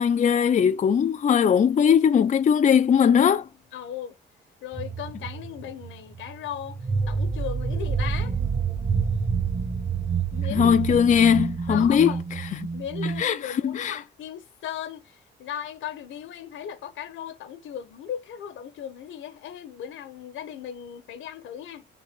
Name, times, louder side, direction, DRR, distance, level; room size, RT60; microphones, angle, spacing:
voice 1, 0.0-3.5 10.5-12.1 13.0-14.0, left 7 dB, 40° left, 0.5 m, -20 dB
voice 2, 3.7-4.2 4.6-6.8 7.1-8.3 10.3-11.3 11.7-12.2 12.7-21.9, left 9 dB, 80° left, 1.2 m, -37 dB
sound 1, 4.7-13.2, right 5 dB, 35° right, 1.4 m, -28 dB
6.3 x 3.9 x 5.2 m
cardioid pair, 90°, 20 cm